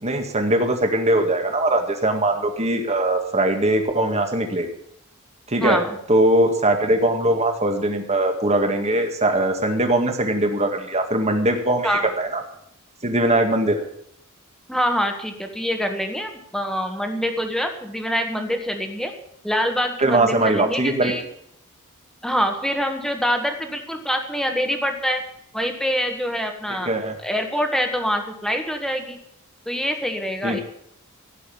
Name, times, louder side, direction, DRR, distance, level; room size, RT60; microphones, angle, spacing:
voice 1, 0.0-4.7 5.5-5.8 6.1-12.4 13.0-13.8 20.0-21.1 26.7-27.2 30.4-30.6, right 1 dB, 30° right, 5 dB, 2.0 m, -21 dB
voice 2, 5.6-6.0 11.8-12.1 14.7-19.1 19.4-21.2 22.2-25.2 25.5-26.9 27.2-29.2 29.7-30.6, equal, ahead, 5 dB, 1.7 m, -25 dB
16.5 x 6.4 x 9.2 m, 0.72 s
head